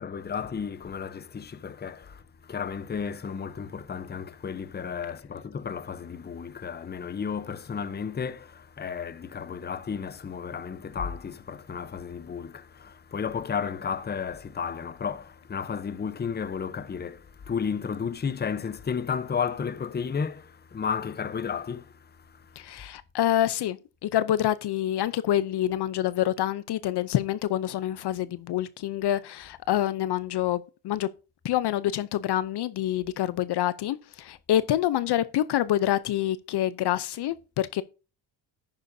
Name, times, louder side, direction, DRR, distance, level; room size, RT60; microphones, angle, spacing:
voice 1, 0.0-22.6, left 6 dB, 20° left, 0.7 m, -33 dB
voice 2, 22.6-31.1 31.4-37.8, left 12 dB, 55° left, 0.7 m, -27 dB
11.0 x 9.0 x 2.7 m
cardioid pair, 115°, 48 cm